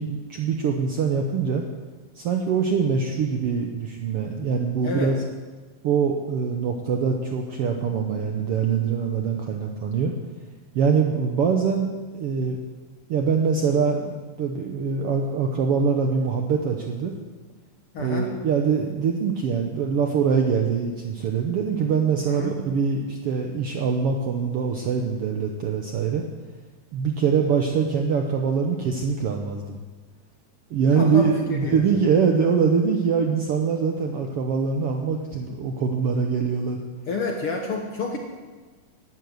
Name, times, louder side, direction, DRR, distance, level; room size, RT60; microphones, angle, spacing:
voice 1, 0.0-1.6 2.1-5.1 5.8-10.1 10.7-12.6 13.1-17.2 18.0-26.3 26.9-29.8 30.7-36.8, right 6 dB, 85° right, 2 dB, 1.3 m, -23 dB
voice 2, 4.8-5.1 17.9-18.3 22.2-22.6 30.9-32.0 37.1-38.2, left 4 dB, 55° left, 1 dB, 1.6 m, -29 dB
12.0 x 11.5 x 7.9 m, 1.4 s
omnidirectional pair, 4.0 m